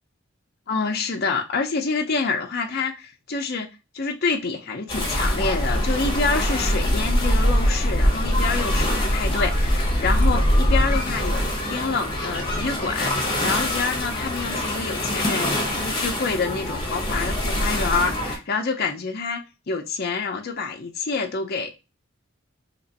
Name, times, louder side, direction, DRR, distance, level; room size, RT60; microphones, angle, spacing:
voice 1, 0.7-3.7 3.9-11.4 11.7-19.4 19.7-21.7, left 4 dB, 50° left, 0.5 m, -27 dB
sound 1, 4.9-18.4, equal, 20° left, 1.0 m, -23 dB
2.9 x 2.5 x 4.0 m
head